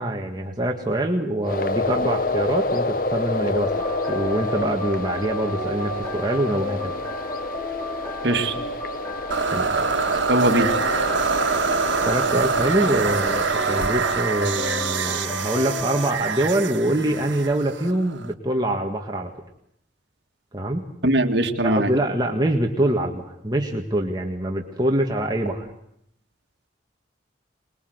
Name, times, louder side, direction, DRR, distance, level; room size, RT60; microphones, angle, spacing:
voice 1, 0.0-6.9 9.5-9.7 12.1-19.3 20.5-20.8 21.6-25.7, right 1 dB, 20° right, 1 dB, 1.7 m, -24 dB
sound 1, 1.4-13.9, left 2 dB, 45° left, 1.0 m, -29 dB
sound 2, 3.6-16.2, equal, 15° left, 4.3 m, -33 dB
voice 2, 8.2-8.6 10.3-10.7 21.0-21.9, right 1 dB, 65° right, 5 dB, 2.1 m, -20 dB
sound 3, 9.3-18.3, right 5 dB, 85° right, 1.5 m, -25 dB
25.5 x 21.0 x 8.0 m, 0.74 s
head